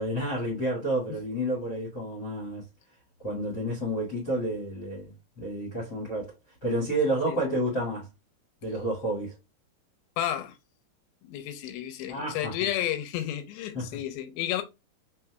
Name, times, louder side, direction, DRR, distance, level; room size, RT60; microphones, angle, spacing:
voice 1, 0.0-2.6 3.2-6.3 6.6-8.1 8.6-9.3 12.1-12.5 13.7-14.0, right 1 dB, 45° left, 1.3 m, -30 dB
voice 2, 10.2-10.6 11.2-14.6, left 12 dB, 75° left, 2.4 m, -32 dB
5.9 x 3.4 x 2.2 m
omnidirectional pair, 4.9 m